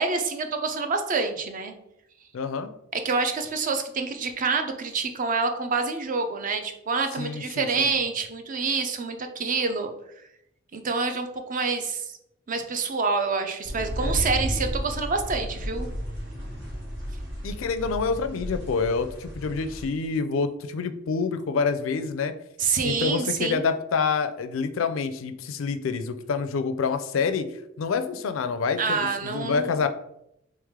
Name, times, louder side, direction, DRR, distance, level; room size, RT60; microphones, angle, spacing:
voice 1, 0.0-1.7 2.9-9.9 10.7-12.2 12.5-15.9 22.6-23.6 28.8-29.7, right 4 dB, 40° right, 6 dB, 0.4 m, -27 dB
voice 2, 2.3-2.7 7.2-7.9 14.0-14.2 17.4-22.3 22.8-27.5 27.8-29.9, left 5 dB, 75° left, 10 dB, 0.4 m, -27 dB
sound 1, 13.6-19.9, equal, 65° right, 1.3 m, -33 dB
3.4 x 3.2 x 3.5 m, 0.79 s
head